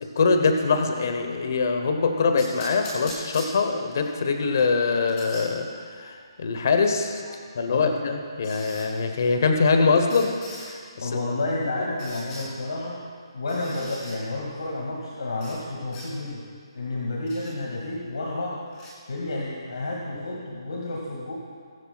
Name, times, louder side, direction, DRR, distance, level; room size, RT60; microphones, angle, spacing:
voice 1, 0.0-5.7 5.9-7.2 7.5-10.3 10.7-11.1, left 4 dB, 40° left, 5 dB, 0.9 m, -23 dB
sound 1, 2.4-4.1 4.6-5.5 7.0-7.1 8.4-8.9 10.1-10.7 12.0-12.5 13.5-14.2 15.4-15.6 15.9-16.1 17.3-17.5 18.7-18.9, left 1 dB, 15° left, 2.0 m, -41 dB
voice 2, 11.0-13.0 13.3-16.4 16.7-18.6 19.1-21.3, left 2 dB, 75° left, -3 dB, 2.1 m, -30 dB
21.5 x 10.0 x 2.4 m, 2.1 s
hypercardioid pair, 175°, 3 cm